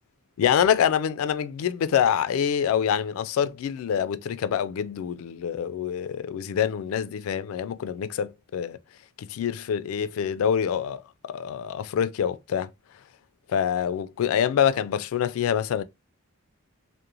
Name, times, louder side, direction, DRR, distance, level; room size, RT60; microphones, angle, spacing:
voice 1, 0.4-8.8 9.2-12.7 13.5-15.8, left 8 dB, 70° left, 0.3 m, -26 dB
2.9 x 2.1 x 2.4 m
head